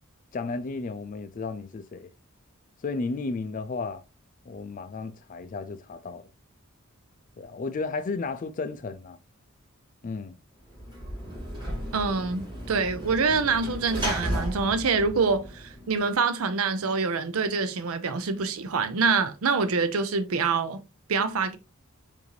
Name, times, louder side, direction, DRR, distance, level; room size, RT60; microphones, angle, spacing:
voice 1, 0.3-2.1 2.8-4.0 4.5-6.2 7.4-9.2 10.0-10.4, left 3 dB, 40° left, 0.4 m, -33 dB
Sliding door / Slam, 10.7-16.1, equal, 20° right, 2.2 m, -34 dB
voice 2, 11.9-20.8 21.1-21.6, right 4 dB, 80° right, 0.6 m, -26 dB
4.9 x 2.6 x 3.1 m
head